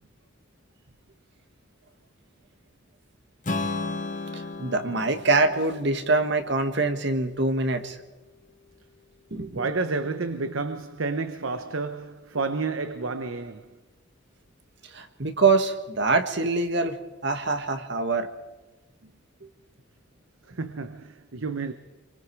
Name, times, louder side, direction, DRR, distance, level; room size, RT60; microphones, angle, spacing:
Strum, 3.4-7.6, left 3 dB, 40° left, 2.0 m, -35 dB
voice 1, 4.3-8.0 9.3-9.7 14.9-18.3, right 3 dB, 60° right, 1.8 m, -24 dB
voice 2, 9.5-13.8 20.5-21.7, right 3 dB, 80° right, 1.0 m, -30 dB
29.0 x 23.5 x 4.8 m
head